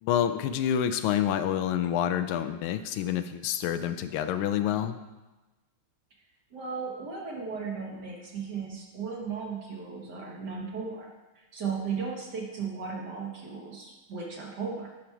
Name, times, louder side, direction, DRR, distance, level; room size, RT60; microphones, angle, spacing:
voice 1, 0.0-5.0, left 10 dB, 90° left, 9 dB, 1.5 m, -28 dB
voice 2, 6.5-11.1 11.4-14.9, right 5 dB, 55° right, -1 dB, 1.9 m, -36 dB
10.5 x 5.1 x 4.6 m, 1.1 s
omnidirectional pair, 2.3 m